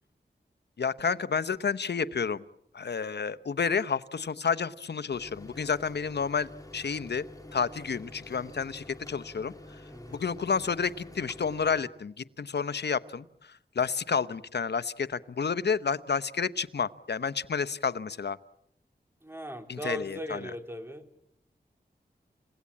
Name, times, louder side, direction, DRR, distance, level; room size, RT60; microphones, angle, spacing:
voice 1, 0.8-2.4 2.7-7.2 7.5-9.5 10.1-13.2 13.8-18.4 19.7-20.4, left 6 dB, 70° left, 14 dB, 0.9 m, -30 dB
sound 1, 5.1-11.8, left 1 dB, 20° left, 3.3 m, -48 dB
voice 2, 9.9-10.2 19.2-21.1, equal, 15° right, 6 dB, 3.4 m, -38 dB
30.0 x 17.5 x 8.6 m, 0.77 s
wide cardioid pair, 60°, 18 cm